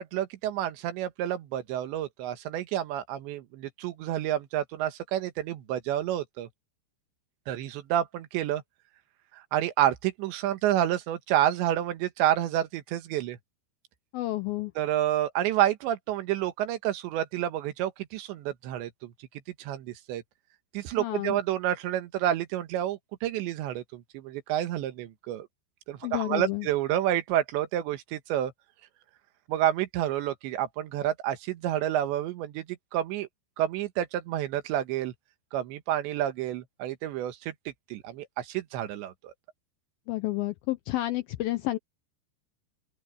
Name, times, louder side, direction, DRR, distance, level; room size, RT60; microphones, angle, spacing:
voice 1, 0.0-6.5 7.5-8.6 9.3-13.4 14.8-19.1 19.6-20.2 20.7-25.5 25.9-28.5 29.5-33.3 33.6-35.1 35.5-37.5 37.9-39.3, right 12 dB, 85° right, 3.6 m, -29 dB
voice 2, 14.1-14.7 21.0-21.4 26.0-26.7 40.1-41.8, left 17 dB, 85° left, 2.1 m, -30 dB
open air
omnidirectional pair, 5.0 m